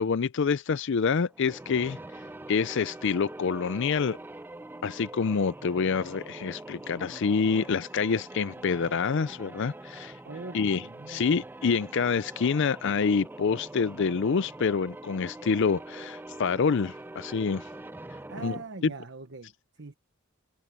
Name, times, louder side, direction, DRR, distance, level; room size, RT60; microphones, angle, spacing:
voice 1, 0.0-2.0 2.5-4.2 4.8-10.2 10.5-17.7 18.4-18.6, left 5 dB, 55° left, 0.4 m, -27 dB
sound 1, 1.3-18.8, right 2 dB, 10° right, 0.3 m, -44 dB
voice 2, 10.2-11.4 18.3-19.9, right 3 dB, 55° right, 1.2 m, -42 dB
head